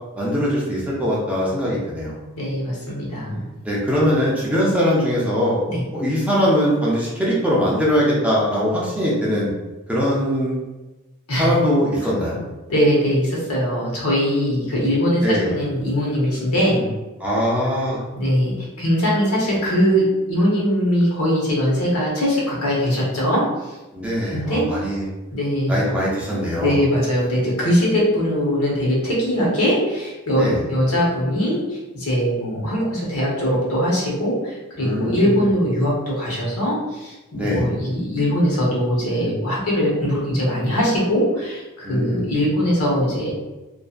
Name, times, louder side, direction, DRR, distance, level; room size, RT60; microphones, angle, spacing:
voice 1, 0.2-2.2 3.6-5.6 5.9-9.5 9.9-10.6 11.3-12.4 15.2-15.5 17.2-18.0 23.9-25.1 25.7-26.7 30.4-30.6 34.8-35.5 37.3-37.7 41.8-42.4, equal, 5° right, -6 dB, 0.5 m, -21 dB
voice 2, 2.3-3.4 5.6-5.9 11.3-11.5 12.0-12.1 12.7-16.9 18.1-23.5 24.3-24.7 25.3-25.9 26.6-43.3, equal, 85° left, -4 dB, 1.0 m, -21 dB
2.7 x 2.4 x 2.4 m, 1.1 s
head